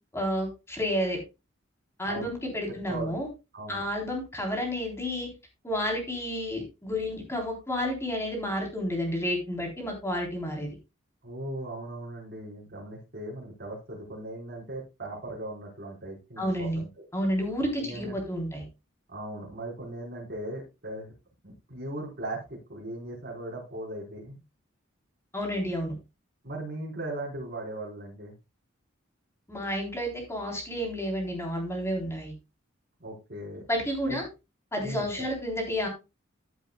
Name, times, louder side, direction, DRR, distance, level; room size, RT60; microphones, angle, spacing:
voice 1, 0.1-1.2 2.0-3.3 3.7-5.3 5.6-10.7 16.4-16.8 17.1-18.6 25.3-25.9 29.5-32.3 33.7-34.3 34.7-35.9, equal, 15° left, 1 dB, 3.8 m, -30 dB
voice 2, 2.7-3.2 3.5-3.8 11.2-17.0 17.8-18.1 19.1-21.1 21.4-24.4 26.4-28.3 33.0-33.6 34.1-34.2 34.8-35.1, right 1 dB, 55° right, -4 dB, 4.9 m, -38 dB
14.5 x 8.2 x 2.3 m, 0.26 s
head